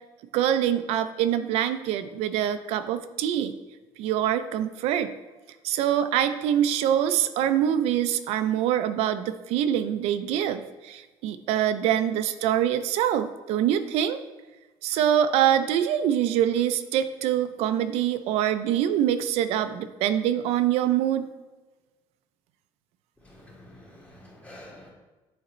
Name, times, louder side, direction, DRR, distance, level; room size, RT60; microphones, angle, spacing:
voice 1, 0.3-3.5 4.0-5.1 5.6-14.2 14.8-21.3, right 10 dB, 85° right, 10 dB, 0.4 m, -24 dB
voice 2, 23.2-24.9, left 1 dB, 15° left, -3 dB, 1.5 m, -48 dB
8.4 x 4.1 x 3.0 m, 1.2 s
cardioid pair, 150°, 10 cm